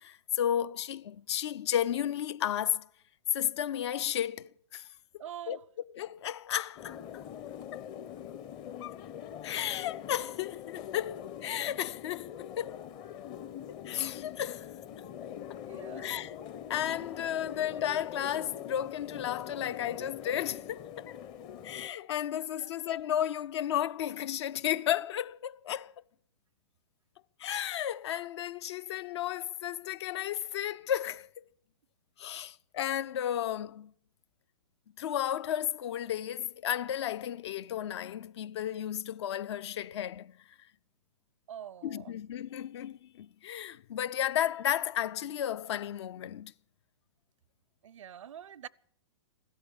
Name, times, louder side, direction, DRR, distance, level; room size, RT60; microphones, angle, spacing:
voice 1, 0.0-2.9 3.3-4.9 5.5-5.6 5.9-7.2 7.7-7.8 8.8-9.0 9.4-12.8 13.8-14.7 15.5-15.6 16.0-16.3 16.7-21.2 21.6-25.9 27.4-31.4 32.2-33.9 35.0-40.4 41.8-46.5, left 10 dB, 60° left, 0.6 m, -33 dB
voice 2, 5.2-5.6 15.7-16.1 22.6-22.7 41.5-42.1 47.8-48.7, right 10 dB, 80° right, 0.5 m, -45 dB
sound 1, 6.8-21.9, left 9 dB, 30° left, 0.8 m, -43 dB
15.5 x 13.0 x 7.2 m
hypercardioid pair, 130°, 16 cm